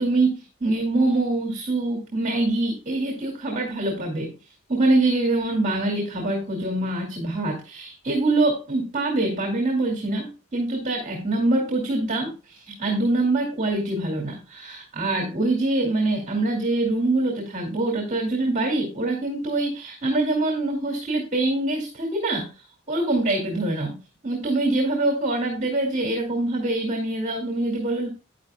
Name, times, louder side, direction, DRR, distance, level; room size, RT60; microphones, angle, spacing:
voice 1, 0.0-4.3 4.7-24.0 24.2-28.1, right 2 dB, 40° right, 0 dB, 2.4 m, -24 dB
11.0 x 9.9 x 2.3 m, 0.33 s
head